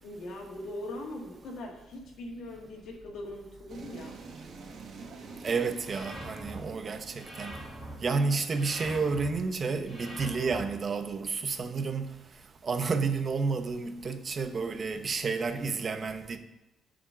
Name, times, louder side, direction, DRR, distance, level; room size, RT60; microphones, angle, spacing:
voice 1, 0.0-4.1, left 1 dB, 75° left, 1.7 m, -41 dB
sound 1, 3.7-9.2, right 4 dB, 60° right, 1.1 m, -47 dB
voice 2, 5.4-7.5 8.0-12.1 12.6-16.4, right 4 dB, 40° right, 0.7 m, -30 dB
sound 2, 5.8-6.6 7.1-7.9 8.5-9.3 9.8-10.6, equal, 10° left, 3.2 m, -43 dB
7.2 x 5.2 x 5.5 m
cardioid pair, 90°, 0 cm